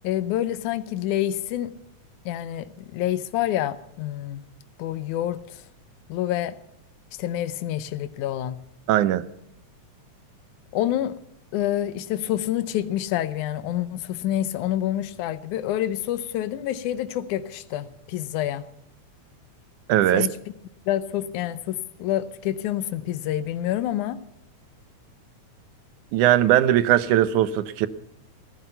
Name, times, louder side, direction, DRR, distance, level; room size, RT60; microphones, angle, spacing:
voice 1, 0.0-1.7 2.3-4.4 4.8-5.6 6.1-6.6 7.2-8.6 10.7-11.1 11.5-18.6 20.1-20.3 20.9-24.2, left 12 dB, 85° left, 13 dB, 2.3 m, -27 dB
voice 2, 8.9-9.2 19.9-20.3 26.1-27.9, right 12 dB, 90° right, 15 dB, 2.3 m, -19 dB
15.0 x 14.0 x 5.7 m, 0.77 s
omnidirectional pair, 3.4 m